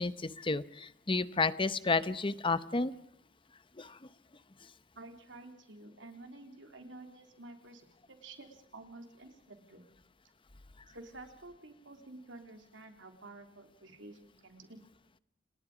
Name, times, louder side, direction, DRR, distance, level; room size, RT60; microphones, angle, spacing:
voice 1, 0.0-3.0 3.8-4.0, left 3 dB, 25° left, 15 dB, 0.8 m, -31 dB
voice 2, 5.0-7.8 8.1-9.8 10.9-14.9, right 2 dB, 70° right, 5 dB, 3.6 m, -51 dB
29.5 x 19.5 x 5.1 m, 0.70 s
head